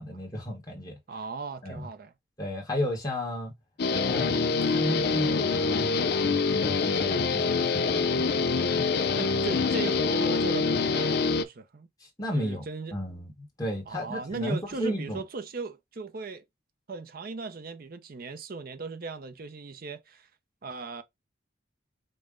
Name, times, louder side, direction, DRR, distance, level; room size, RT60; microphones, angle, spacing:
voice 1, 0.0-1.0 1.6-1.9 2.4-3.5 4.0-8.3 8.7-9.0 12.2-12.6 12.9-15.2, left 1 dB, 20° left, 1.2 m, -34 dB
voice 2, 1.1-2.1 9.2-11.9 12.3-13.0 13.9-16.4 16.9-20.3 20.6-21.0, right 4 dB, 45° right, 0.5 m, -37 dB
Guitar, 3.8-11.5, left 4 dB, 50° left, 0.4 m, -25 dB
5.2 x 2.1 x 3.6 m
head